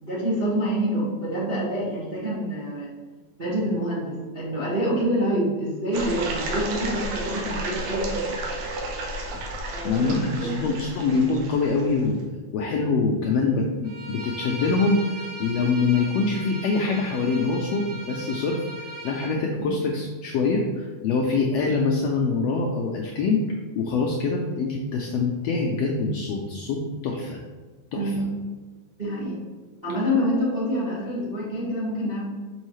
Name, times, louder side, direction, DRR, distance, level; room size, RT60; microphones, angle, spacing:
voice 1, 0.0-2.9 3.4-8.3 9.7-10.7 19.6-19.7 27.9-28.4 29.0-29.4 29.8-32.2, equal, 35° right, -8 dB, 0.8 m, -27 dB
sound 1, 5.9-12.0, right 2 dB, 90° right, 2.5 m, -32 dB
voice 2, 9.6-12.2 12.5-15.0 15.4-18.6 19.0-23.4 23.8-27.4 27.9-28.0, left 4 dB, 90° left, 0 dB, 1.4 m, -24 dB
Bowed string instrument, 13.8-19.3, right 1 dB, 70° right, 1.0 m, -38 dB
6.4 x 5.4 x 3.1 m, 1.4 s
omnidirectional pair, 3.6 m